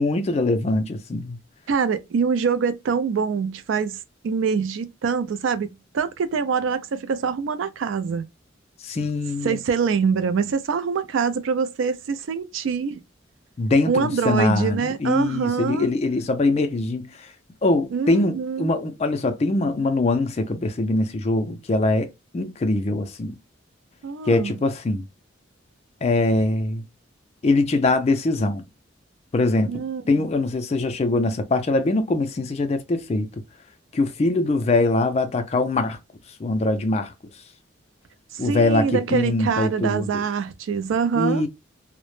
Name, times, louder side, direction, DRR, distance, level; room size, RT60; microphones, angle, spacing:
voice 1, 0.0-1.4 8.8-9.6 13.6-17.3 17.6-23.4 24.3-25.0 26.0-26.8 27.4-28.7 29.3-33.4 33.9-36.0 36.4-37.1 38.4-40.2 41.1-41.5, left 2 dB, 30° left, 0.3 m, -22 dB
voice 2, 1.7-8.2 9.4-13.0 13.9-15.9 17.9-18.8 24.0-24.5 29.7-30.3 38.3-41.4, right 5 dB, 75° right, 0.3 m, -24 dB
2.0 x 2.0 x 3.0 m
head